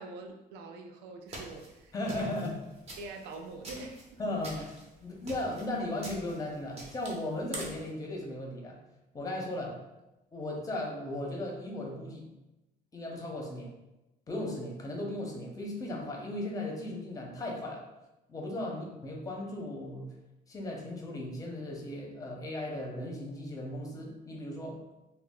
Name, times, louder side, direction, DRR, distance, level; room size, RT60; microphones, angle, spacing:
voice 1, 0.0-2.3 3.0-4.2 18.7-18.8, right 3 dB, 90° right, 4 dB, 0.4 m, -45 dB
sound 1, 1.3-7.9, right 1 dB, 40° right, 0.8 m, -46 dB
voice 2, 1.9-2.6 4.2-4.7 5.0-8.8 9.1-9.8 10.3-12.3 12.9-13.7 14.3-17.8 18.3-20.1 20.5-24.8, left 1 dB, 20° left, 0 dB, 0.6 m, -36 dB
2.2 x 2.0 x 3.5 m, 0.96 s
cardioid pair, 110°, 17 cm